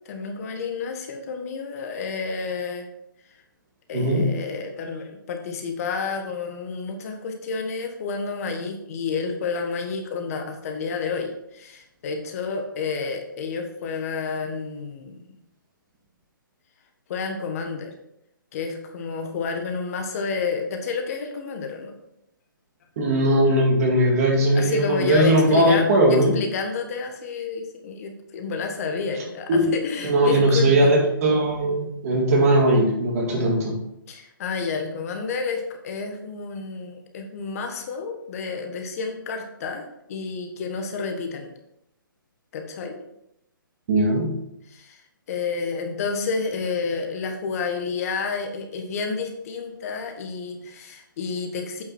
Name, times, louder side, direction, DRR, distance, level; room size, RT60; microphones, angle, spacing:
voice 1, 0.0-2.9 3.9-15.2 17.1-17.9 18.5-22.0 24.5-30.9 34.1-41.5 42.5-43.0 44.7-45.0 45.3-51.8, left 4 dB, 45° left, 4 dB, 1.5 m, -30 dB
voice 2, 3.9-4.3 23.0-26.4 29.5-29.7 30.0-33.8 43.9-44.4, right 1 dB, 45° right, 0 dB, 2.3 m, -19 dB
8.5 x 5.7 x 4.4 m, 0.79 s
hypercardioid pair, 145°, 12 cm